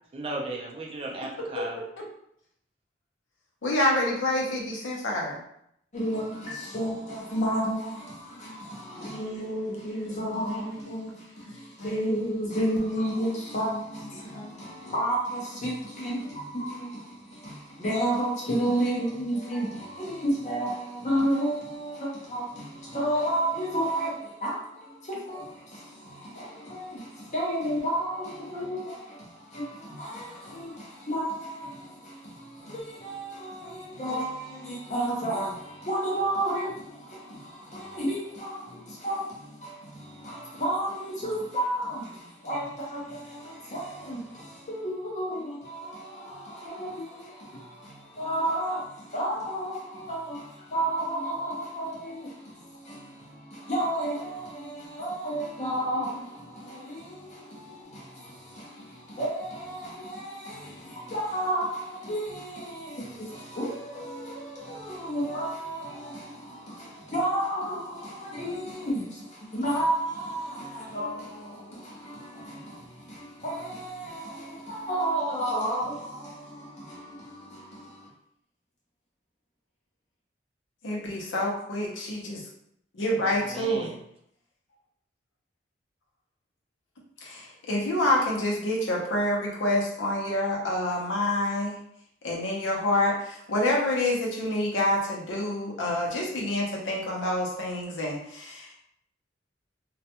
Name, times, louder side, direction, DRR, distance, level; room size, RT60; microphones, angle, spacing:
voice 1, 0.1-1.8 83.2-84.0, right 2 dB, 30° right, 0.4 m, -36 dB
voice 2, 3.6-5.4 10.1-10.8 11.1-11.2 11.8-12.0 14.3-14.5 80.8-82.4 82.9-83.9 87.2-91.8 92.2-98.7, left 1 dB, 90° left, 0.7 m, -27 dB
voice 3, 5.9-78.1, right 1 dB, 40° left, 0.6 m, -32 dB
2.3 x 2.2 x 2.8 m
head